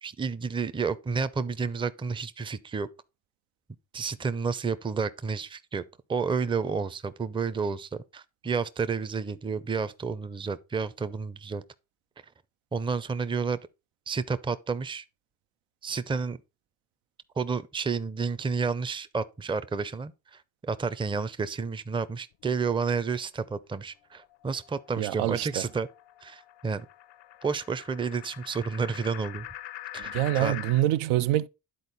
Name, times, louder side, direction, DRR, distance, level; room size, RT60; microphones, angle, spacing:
voice 1, 0.0-2.9 3.9-5.8 6.1-11.6 12.7-13.6 14.1-15.0 15.8-16.4 17.4-25.9 26.2-26.9 27.4-29.5 29.9-30.6, right 5 dB, 10° right, 0.4 m, -30 dB
sound 1, 24.1-30.8, left 14 dB, 60° left, 0.6 m, -44 dB
voice 2, 25.0-25.6 30.0-31.5, right 14 dB, 80° right, 0.5 m, -26 dB
10.0 x 4.1 x 4.0 m
supercardioid pair, 70°, 49 cm